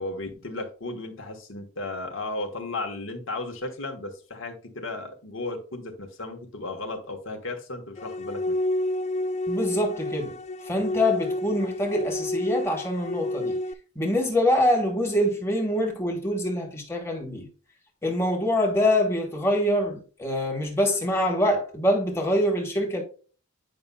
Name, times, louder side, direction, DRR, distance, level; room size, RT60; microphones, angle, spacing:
voice 1, 0.0-8.6, left 2 dB, 70° left, 1.2 m, -35 dB
sound 1, 8.0-13.7, left 1 dB, 30° left, 0.3 m, -29 dB
voice 2, 9.5-13.6 13.9-17.5 18.0-23.0, left 1 dB, 10° left, 1.2 m, -25 dB
8.6 x 5.3 x 2.2 m
head